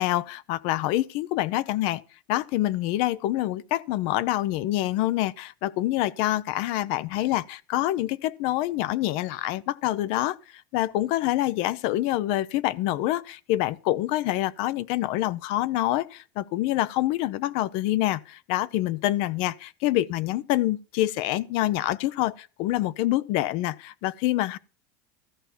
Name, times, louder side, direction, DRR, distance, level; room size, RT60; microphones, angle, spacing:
voice 1, 0.0-2.0 2.3-10.4 10.7-24.6, left 15 dB, 65° left, 0.6 m, -26 dB
13.5 x 5.8 x 7.1 m
supercardioid pair, 135°, 10 cm